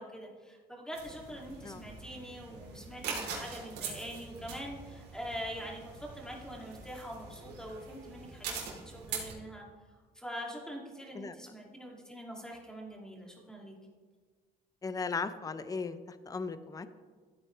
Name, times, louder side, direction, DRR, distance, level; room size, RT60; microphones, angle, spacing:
voice 1, 0.0-8.6 8.9-9.6 10.1-13.7, equal, 5° left, -2 dB, 2.6 m, -44 dB
sound 1, 0.9-9.3, right 5 dB, 80° right, 3.6 m, -43 dB
voice 2, 14.8-16.0 16.3-16.9, left 4 dB, 20° left, 12 dB, 0.6 m, -36 dB
15.0 x 9.2 x 3.4 m, 1.5 s
cardioid pair, 110°, 17 cm